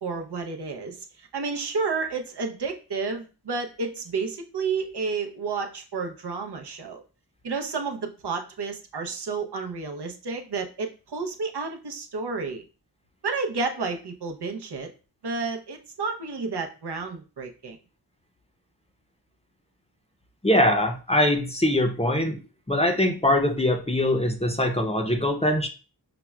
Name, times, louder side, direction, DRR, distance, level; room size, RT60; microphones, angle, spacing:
voice 1, 0.0-7.0 7.4-12.6 13.2-14.9 15.2-17.8, right 4 dB, 75° right, 4 dB, 0.6 m, -31 dB
voice 2, 20.4-22.4 22.7-25.7, left 1 dB, 15° left, 3 dB, 0.6 m, -22 dB
5.8 x 2.0 x 2.2 m, 0.34 s
wide cardioid pair, 50°, 40 cm